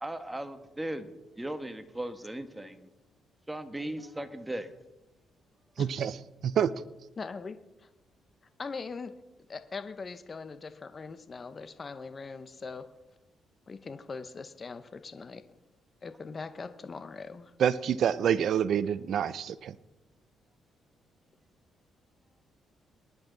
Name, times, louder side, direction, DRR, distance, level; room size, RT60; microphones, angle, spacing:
voice 1, 0.0-2.9 3.5-4.7, right 1 dB, 10° right, 8 dB, 1.4 m, -37 dB
voice 2, 5.8-6.2 6.4-6.7 17.6-19.8, right 8 dB, 65° right, 17 dB, 0.5 m, -27 dB
voice 3, 7.2-7.9 8.6-9.1 9.5-12.9 13.7-15.4 16.0-17.5, left 4 dB, 35° left, 10 dB, 0.9 m, -41 dB
22.5 x 10.5 x 4.0 m, 1.0 s
cardioid pair, 90°, 0 cm